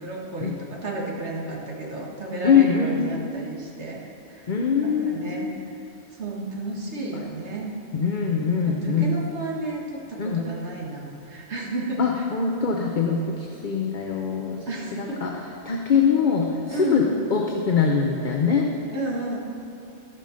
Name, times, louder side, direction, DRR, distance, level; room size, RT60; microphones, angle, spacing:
voice 1, 0.0-4.0 4.3-4.5 4.8-5.8 6.1-7.8 8.7-12.2 14.7-15.2 16.7-17.1 18.9-19.4, right 2 dB, 90° right, -3 dB, 1.9 m, -32 dB
voice 2, 2.4-3.0 4.5-5.5 7.1-7.2 7.9-9.2 10.2-10.4 12.0-15.3 15.7-17.0 17.3-18.7, left 6 dB, 50° left, 0 dB, 0.9 m, -23 dB
15.0 x 5.4 x 6.4 m, 2.7 s
omnidirectional pair, 1.1 m